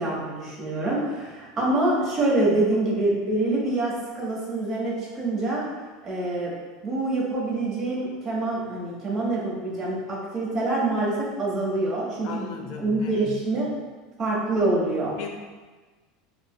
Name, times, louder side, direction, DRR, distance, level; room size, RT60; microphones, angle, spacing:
voice 1, 0.0-5.6 6.0-6.5 6.8-12.5 12.8-13.7 14.2-15.2, right 2 dB, 30° right, -6 dB, 1.0 m, -25 dB
voice 2, 12.2-13.4 15.2-15.3, left 7 dB, 55° left, 2 dB, 0.4 m, -37 dB
5.2 x 2.0 x 2.2 m, 1.3 s
supercardioid pair, 150°, 0 cm